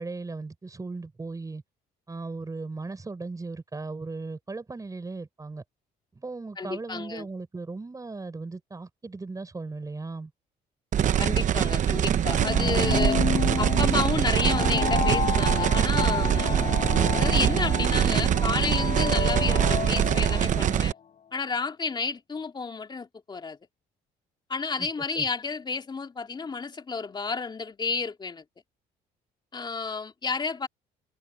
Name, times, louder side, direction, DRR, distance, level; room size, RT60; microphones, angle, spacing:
voice 1, 0.0-1.6 2.1-5.6 6.1-10.3 24.8-24.9 25.2-25.3, right 3 dB, 20° right, 6.2 m, -37 dB
voice 2, 6.6-7.3 11.2-13.2 13.6-16.7 17.1-20.9 21.3-23.6 24.5-28.4 29.5-30.7, left 4 dB, 25° left, 3.0 m, -31 dB
sound 1, 10.9-20.9, right 9 dB, 45° right, 0.9 m, -23 dB
sound 2, 12.3-21.0, left 7 dB, 45° left, 4.0 m, -31 dB
cardioid pair, 110°, 17 cm